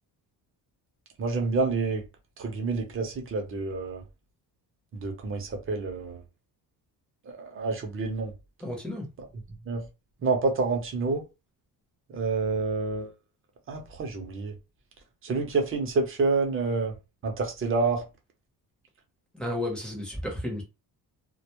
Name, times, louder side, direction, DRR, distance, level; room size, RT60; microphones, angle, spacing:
voice 1, 1.2-2.0 2.4-4.0 4.9-6.2 7.3-8.3 9.7-9.8 10.2-11.2 12.1-13.1 13.7-14.5 15.2-16.9 17.2-18.0, right 3 dB, 30° right, 0.6 m, -28 dB
voice 2, 8.6-9.1 19.3-20.6, left 1 dB, ahead, 0.7 m, -32 dB
2.2 x 2.0 x 2.9 m
cardioid pair, 155°, 40 cm